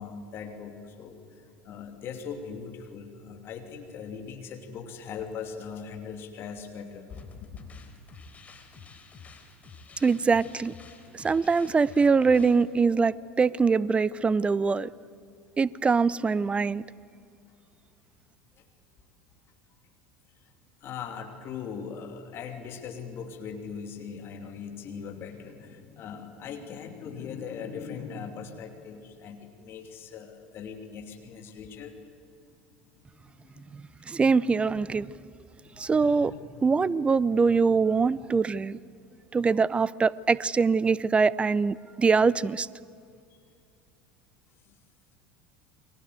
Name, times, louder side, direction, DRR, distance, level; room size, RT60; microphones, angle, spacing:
voice 1, 0.0-7.8 20.8-32.0 33.2-33.8 35.6-36.4 44.7-44.8, left 6 dB, 45° left, 5 dB, 2.8 m, -40 dB
sound 1, 7.1-12.6, left 4 dB, 25° left, 4.0 m, -50 dB
voice 2, 10.0-10.7 11.1-14.9 15.6-16.8 33.7-35.1 35.8-36.3 36.6-38.8 39.3-42.7, right 4 dB, 20° right, 21 dB, 0.7 m, -23 dB
30.0 x 23.5 x 8.0 m, 2.3 s
figure-of-eight pair, 75°, 6 cm